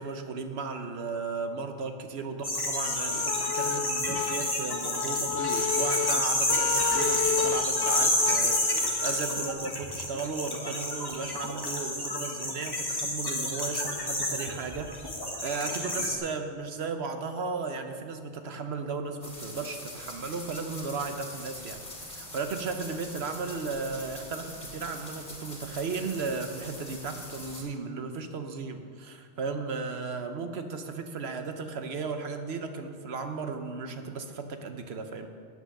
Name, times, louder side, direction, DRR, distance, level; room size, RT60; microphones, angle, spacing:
voice 1, 0.0-35.3, right 4 dB, 60° right, 7 dB, 1.1 m, -35 dB
sound 1, 2.4-16.2, left 1 dB, 20° left, 1.4 m, -29 dB
sound 2, 2.8-9.5, left 7 dB, 70° left, 0.8 m, -32 dB
sound 3, 19.2-27.6, left 1 dB, 45° left, 3.1 m, -43 dB
10.0 x 8.4 x 6.5 m, 2.2 s
omnidirectional pair, 1.2 m